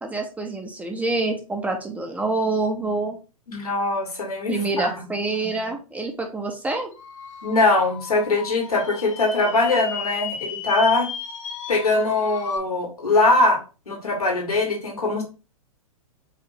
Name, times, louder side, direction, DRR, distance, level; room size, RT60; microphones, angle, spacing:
voice 1, 0.0-3.2 4.5-6.9, right 3 dB, 10° right, 3 dB, 0.6 m, -26 dB
voice 2, 3.5-4.9 7.4-11.1 11.7-13.6 13.9-15.2, left 2 dB, 80° left, 1 dB, 1.8 m, -21 dB
sound 1, 6.9-12.6, left 5 dB, 60° left, 0.9 m, -34 dB
4.9 x 2.6 x 3.3 m, 0.32 s
figure-of-eight pair, 110°, 19 cm